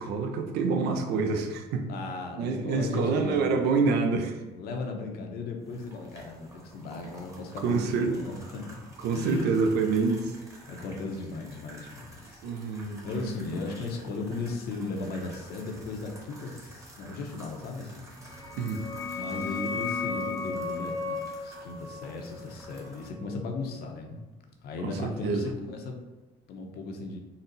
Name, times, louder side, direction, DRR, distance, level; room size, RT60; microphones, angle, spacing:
voice 1, 0.0-1.9 2.4-4.4 7.6-8.2 9.0-10.3 12.4-13.3 18.6-18.9 24.8-25.5, right 4 dB, 80° right, 5 dB, 0.6 m, -27 dB
voice 2, 1.9-3.6 4.5-8.8 9.1-9.5 10.7-12.7 13.0-18.1 19.2-24.2 24.6-26.0 26.5-27.2, left 3 dB, 70° left, 2 dB, 0.7 m, -36 dB
sound 1, 5.6-23.1, right 1 dB, 20° right, 1.0 m, -50 dB
sound 2, 18.3-23.7, left 4 dB, 15° left, 0.6 m, -35 dB
4.0 x 2.1 x 3.9 m, 1.2 s
cardioid pair, 110°, 17 cm